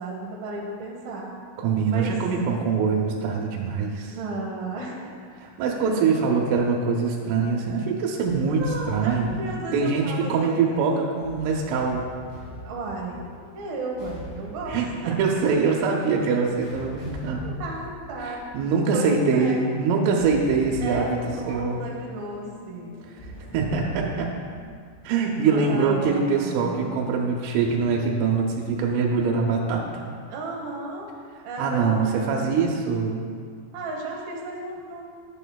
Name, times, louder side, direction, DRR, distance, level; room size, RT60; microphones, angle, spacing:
voice 1, 0.0-1.3 1.9-2.1 4.1-5.1 5.8-6.2 8.6-10.8 12.6-13.2 13.5-14.8 17.4-18.4 18.9-19.7 20.8-22.9 25.5-27.0 30.3-31.1 31.4-32.7 33.7-35.1, right 2 dB, 70° right, -2 dB, 2.3 m, -34 dB
voice 2, 1.6-4.1 5.4-9.4 9.7-12.0 14.7-17.5 18.2-21.2 21.5-21.8 23.5-24.3 25.0-30.0 31.6-33.2, right 5 dB, 90° right, 0 dB, 3.3 m, -23 dB
sound 1, 8.2-24.7, equal, 65° left, 4.5 m, -43 dB
11.5 x 9.0 x 2.3 m, 2.1 s
omnidirectional pair, 5.6 m